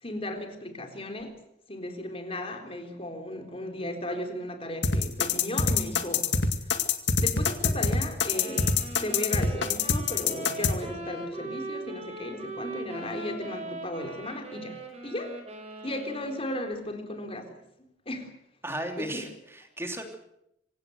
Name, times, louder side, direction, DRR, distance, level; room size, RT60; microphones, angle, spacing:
voice 1, 0.0-1.4 1.7-6.8 7.2-8.7 9.0-14.8 15.0-15.4 15.8-17.6 18.1-18.3 19.0-19.3, left 1 dB, 30° left, 5 dB, 3.9 m, -35 dB
sound 1, 4.8-10.7, left 5 dB, 70° left, 2.1 m, -24 dB
sound 2, 8.3-16.6, right 2 dB, 35° right, 5.8 m, -40 dB
voice 2, 18.6-20.2, right 1 dB, 15° right, 5 dB, 3.1 m, -35 dB
26.0 x 16.5 x 8.0 m, 0.80 s
head